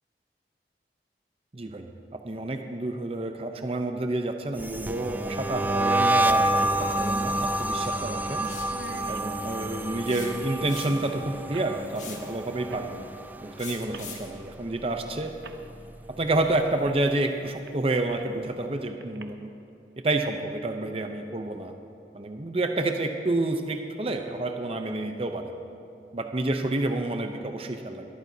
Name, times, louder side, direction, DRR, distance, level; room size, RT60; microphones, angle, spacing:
voice 1, 1.5-8.5 9.1-13.0 13.4-15.3 16.1-19.5 20.0-21.7 22.1-25.5 26.1-28.1, right 2 dB, 35° right, 5 dB, 0.7 m, -29 dB
sound 1, 4.6-13.7 14.0-14.5 14.8-16.3, right 1 dB, 10° right, 0.3 m, -28 dB
sound 2, 4.9-5.0 6.8-6.9 7.2-7.3 7.8-8.0 8.3-8.4 8.6-10.8 11.5-11.8 12.7-12.9 13.9-14.1 15.0-15.1 15.4-15.6 16.9-17.0 17.4-18.4 19.0-19.2, right 3 dB, 75° right, 0.8 m, -44 dB
sound 3, 8.4-8.8 10.1-11.1 11.9-12.3 13.6-14.3, left 6 dB, 45° left, 1.9 m, -41 dB
22.5 x 13.5 x 2.8 m, 2.7 s
head